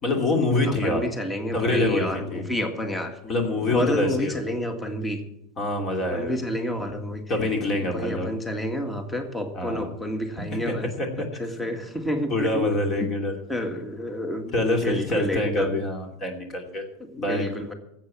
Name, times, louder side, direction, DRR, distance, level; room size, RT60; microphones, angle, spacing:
voice 1, 0.0-1.0 1.5-2.4 3.2-4.4 5.6-6.4 7.3-8.3 9.5-9.9 10.5-11.3 12.3-13.3 14.5-16.9 17.2-17.5, left 2 dB, 30° left, 3 dB, 2.7 m, -25 dB
voice 2, 0.8-3.1 3.7-5.2 6.1-7.2 7.9-10.9 11.4-12.7 13.0-13.1 13.5-14.5 14.8-15.8 17.0-17.7, equal, 10° left, 6 dB, 1.8 m, -29 dB
13.0 x 8.1 x 8.7 m, 0.79 s
supercardioid pair, 130°, 0 cm